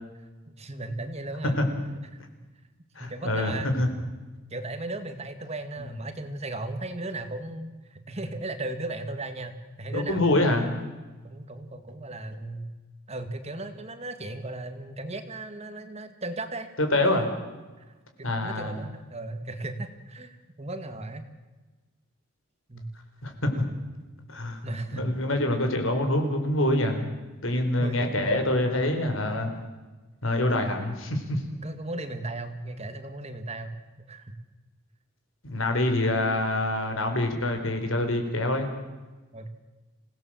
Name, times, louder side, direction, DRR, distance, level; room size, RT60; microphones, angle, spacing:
voice 1, 0.6-1.6 2.1-2.2 3.0-3.7 4.5-10.7 11.2-12.7 13.1-16.7 17.8-17.9 18.2-21.2 22.7-22.9 24.6-25.2 27.8-28.3 31.6-33.8 34.1-34.3 39.3-39.5, right 2 dB, 30° right, 8 dB, 1.9 m, -36 dB
voice 2, 3.0-3.9 9.9-10.6 16.8-17.3 18.2-18.7 23.2-23.6 24.3-27.1 27.4-29.5 30.2-31.4 35.5-38.7, left 1 dB, 65° left, 5 dB, 4.4 m, -25 dB
27.0 x 17.5 x 7.6 m, 1.2 s
head